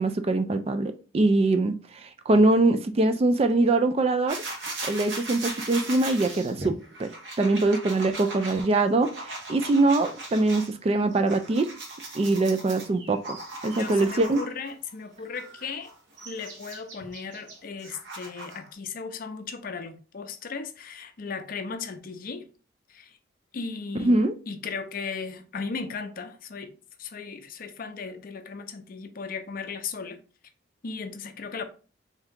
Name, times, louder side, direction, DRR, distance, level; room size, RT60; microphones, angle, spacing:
voice 1, 0.0-4.4 4.8-7.1 7.4-11.7 12.1-13.4 13.6-14.4 24.0-24.3, right 2 dB, 30° right, 0.3 m, -23 dB
sound 1, 4.3-10.7 11.1-14.7 15.3-18.7, right 2 dB, 65° right, 1.0 m, -38 dB
voice 2, 13.8-15.9 16.2-22.5 22.9-23.2 23.5-24.2 24.5-26.7 27.0-30.2 30.8-31.6, left 5 dB, 50° left, 0.5 m, -36 dB
3.6 x 2.8 x 3.5 m
head